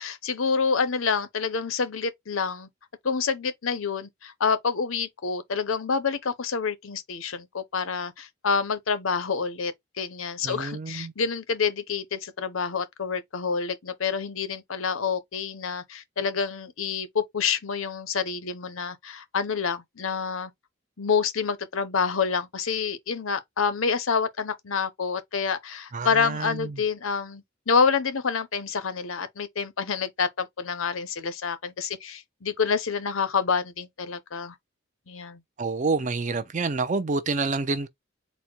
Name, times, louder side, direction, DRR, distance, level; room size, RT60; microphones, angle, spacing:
voice 1, 0.0-2.7 3.0-20.5 21.0-34.5 35.1-35.4, left 5 dB, 80° left, 0.7 m, -28 dB
voice 2, 10.4-11.1 25.9-26.8 35.6-37.9, right 3 dB, 35° right, 0.5 m, -28 dB
4.1 x 2.2 x 4.5 m
head